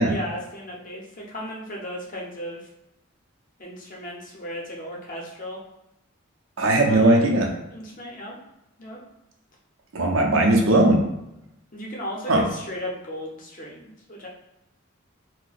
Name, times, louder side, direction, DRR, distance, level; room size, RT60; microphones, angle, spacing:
voice 1, 0.0-2.7 3.6-5.6 6.9-7.3 7.7-8.4 8.8-9.0 11.7-14.3, equal, 40° left, -2 dB, 0.7 m, -35 dB
voice 2, 6.6-7.5 9.9-11.0 12.3-12.4, right 1 dB, 75° right, 1 dB, 0.6 m, -18 dB
2.7 x 2.1 x 4.0 m, 0.87 s
head